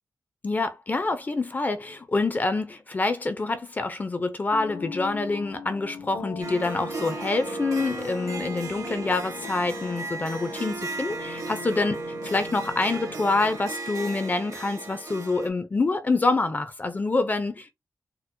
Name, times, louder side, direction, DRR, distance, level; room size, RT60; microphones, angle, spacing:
voice 1, 0.4-12.0 12.2-17.7, left 3 dB, 25° left, 0.4 m, -26 dB
sound 1, 4.5-13.6, left 5 dB, 75° left, 0.6 m, -41 dB
Harp, 6.4-15.5, right 3 dB, 55° right, 0.9 m, -35 dB
4.2 x 2.1 x 2.6 m
wide cardioid pair, 155°, 7 cm